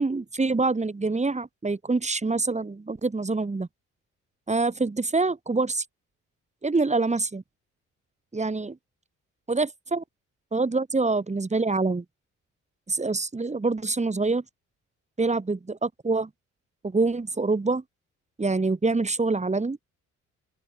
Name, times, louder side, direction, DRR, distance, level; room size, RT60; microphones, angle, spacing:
voice 1, 0.0-3.7 4.5-5.8 6.6-7.4 8.3-8.8 9.5-10.0 10.5-12.0 12.9-14.4 15.2-16.3 16.8-17.8 18.4-19.8, right 3 dB, 20° right, 7.1 m, -25 dB
open air
cardioid pair, 90°, 30 cm